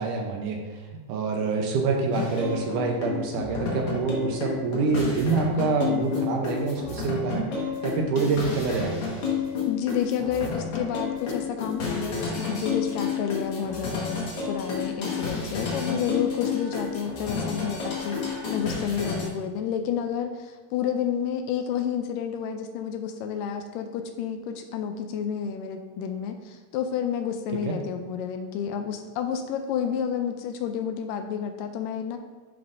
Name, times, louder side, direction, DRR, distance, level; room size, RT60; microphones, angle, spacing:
voice 1, 0.0-9.0 27.5-27.8, right 4 dB, 75° right, 2 dB, 2.1 m, -26 dB
sound 1, 2.1-19.3, left 5 dB, 50° left, 1.8 m, -31 dB
voice 2, 9.7-32.2, left 8 dB, 80° left, 7 dB, 2.1 m, -30 dB
11.0 x 5.9 x 2.6 m, 1.4 s
omnidirectional pair, 4.1 m